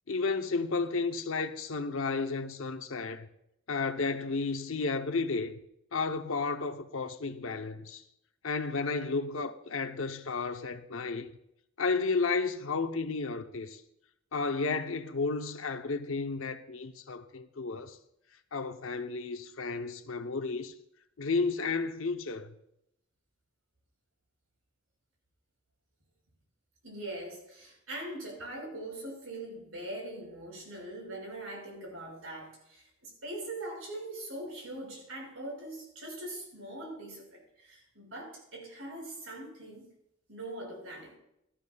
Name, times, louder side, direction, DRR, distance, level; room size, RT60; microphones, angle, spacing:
voice 1, 0.1-3.3 3.7-5.6 5.9-8.0 8.4-11.3 11.8-13.8 14.3-18.0 18.5-20.7 21.2-22.5, left 4 dB, 75° left, 0.7 m, -32 dB
voice 2, 26.8-39.9 40.3-41.1, right 1 dB, 85° right, 5.6 m, -42 dB
17.0 x 12.5 x 2.3 m
head